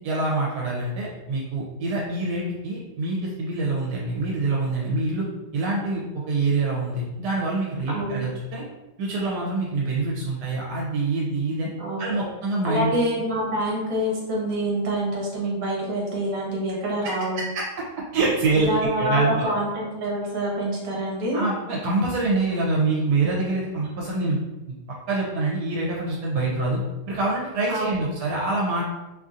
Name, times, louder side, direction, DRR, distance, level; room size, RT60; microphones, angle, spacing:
voice 1, 0.0-5.3 5.5-8.6 9.0-11.7 12.0-12.9 17.5-17.6 18.1-18.7 19.0-19.5 21.3-24.4 24.7-24.8 25.1-26.8 27.1-28.8, right 3 dB, 85° right, -4 dB, 1.2 m, -25 dB
voice 2, 7.9-8.3 11.8-12.3 12.6-17.5 18.6-21.4 27.7-27.9, right 1 dB, 65° right, -3 dB, 1.3 m, -26 dB
2.9 x 2.6 x 2.4 m, 1.1 s
omnidirectional pair, 1.8 m